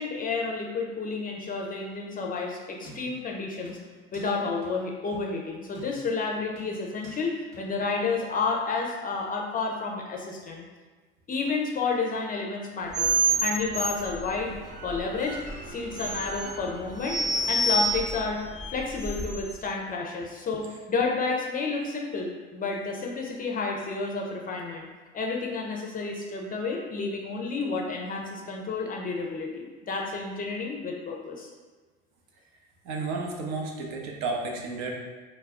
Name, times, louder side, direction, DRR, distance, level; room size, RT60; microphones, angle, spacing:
voice 1, 0.0-3.8 4.1-10.6 11.3-14.5 14.8-15.4 15.7-17.2 17.5-18.4 18.7-24.9 25.1-31.5, left 4 dB, 25° left, 0 dB, 0.4 m, -30 dB
sound 1, 2.8-3.3 3.7-4.3 4.6-4.7 5.1-5.3 5.7-6.2 6.6-7.2 7.5-7.6, right 1 dB, 80° right, 1.1 m, -48 dB
sound 2, 12.9-19.6, right 2 dB, 20° right, 0.7 m, -29 dB
voice 2, 32.8-35.0, right 3 dB, 60° right, 0 dB, 0.6 m, -32 dB
2.2 x 2.0 x 3.5 m, 1.4 s
hypercardioid pair, 65°, 32 cm